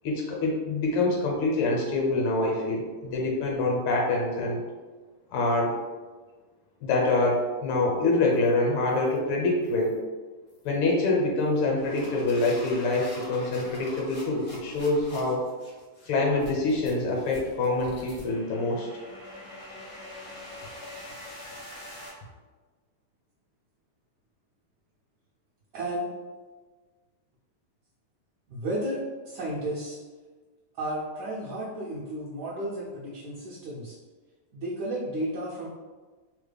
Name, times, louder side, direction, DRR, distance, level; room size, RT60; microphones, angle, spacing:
voice 1, 0.0-4.6 5.3-5.7 6.8-10.0 10.6-15.4 16.1-18.9, left 2 dB, 75° left, -1 dB, 1.5 m, -25 dB
sound 1, 8.3-8.5 8.9-9.2 9.6-10.0 10.5-10.8 11.4-22.1, left 1 dB, 55° left, 0.6 m, -44 dB
voice 2, 25.7-26.1 28.5-30.0 30.8-33.9 34.5-35.7, right 1 dB, 70° right, -7 dB, 1.0 m, -33 dB
3.6 x 2.1 x 3.3 m, 1.3 s
omnidirectional pair, 2.4 m